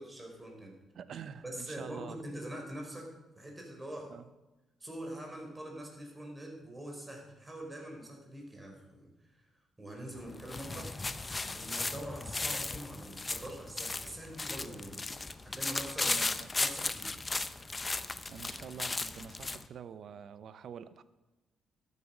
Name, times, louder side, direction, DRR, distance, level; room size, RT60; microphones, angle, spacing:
voice 1, 0.0-0.8 1.4-4.2 4.8-9.5 9.8-10.9 11.5-15.0 15.4-16.2 16.6-17.3, right 1 dB, 15° right, 1 dB, 4.0 m, -44 dB
voice 2, 0.9-2.2 4.1-4.3 10.7-10.9 16.1-16.5 18.3-21.0, right 7 dB, 60° right, 14 dB, 0.7 m, -46 dB
sound 1, 10.2-19.7, left 3 dB, 25° left, 0.7 m, -36 dB
12.5 x 8.4 x 6.1 m, 1.0 s
cardioid pair, 90°, 0 cm